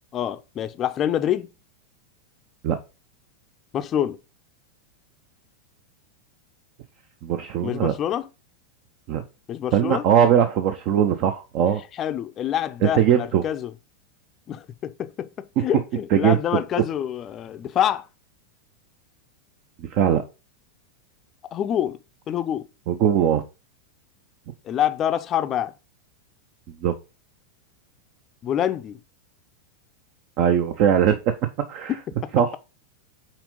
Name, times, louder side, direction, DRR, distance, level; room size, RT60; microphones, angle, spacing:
voice 1, 0.1-1.5 3.7-4.2 7.6-8.3 9.5-10.0 11.9-13.7 14.5-18.1 21.5-22.0 22.3-22.7 24.6-25.7 28.4-29.0 31.9-32.3, left 10 dB, 30° left, 0.5 m, -26 dB
voice 2, 7.2-7.9 9.1-9.2 9.7-11.8 12.8-13.4 16.1-16.6 19.9-20.2 22.9-23.4 26.8-26.9 30.4-31.3 31.7-31.9 32.3-32.6, right 9 dB, 45° right, 0.7 m, -20 dB
5.9 x 4.3 x 5.1 m
figure-of-eight pair, 90°, 0 cm